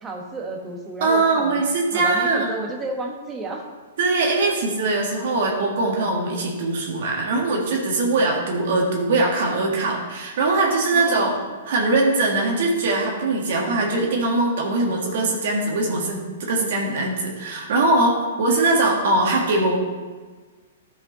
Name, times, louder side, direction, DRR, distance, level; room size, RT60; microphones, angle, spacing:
voice 1, 0.0-1.6 1.9-3.6 4.5-4.6 10.9-11.3 18.3-18.8, right 2 dB, 15° right, 1 dB, 1.2 m, -32 dB
voice 2, 1.0-2.5 4.0-11.3 11.6-19.8, right 2 dB, 65° right, -1 dB, 1.6 m, -21 dB
11.5 x 5.1 x 4.0 m, 1.4 s
hypercardioid pair, 140°, 0 cm